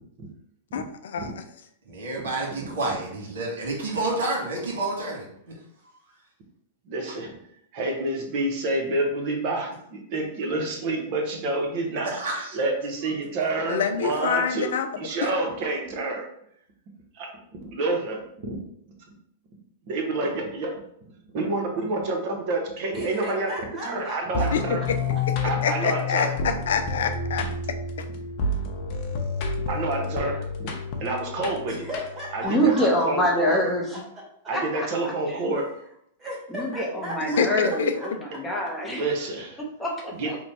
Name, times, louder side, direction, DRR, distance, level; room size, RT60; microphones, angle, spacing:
voice 1, 0.7-1.4 13.7-14.9 15.2-15.3 24.5-24.6 25.6-27.5 28.0-28.1 37.4-37.9, left 7 dB, 75° left, 8 dB, 0.4 m, -26 dB
voice 2, 1.8-5.6 12.0-12.6 15.3-15.4, right 2 dB, 80° right, -2 dB, 1.4 m, -29 dB
voice 3, 6.9-7.3 7.7-12.2 12.5-14.7 15.0-16.2 17.1-17.3 17.6-18.6 19.9-20.8 21.3-23.5 23.8-24.8 25.4-26.3 29.7-30.5 31.0-31.7 32.3-33.6 34.5-35.6 38.8-39.6 40.2-40.3, right 2 dB, 50° right, 1 dB, 0.9 m, -28 dB
voice 4, 22.9-24.6 31.7-33.6 33.9-34.0 36.2-38.1, equal, 20° right, -4 dB, 1.4 m, -36 dB
sound 1, 24.3-32.4, left 3 dB, 45° left, 0.7 m, -30 dB
voice 5, 32.4-34.0 34.5-35.4 36.5-39.0 39.8-40.4, equal, 10° left, -1 dB, 0.8 m, -26 dB
3.0 x 2.2 x 4.1 m, 0.70 s
hypercardioid pair, 125°, 0 cm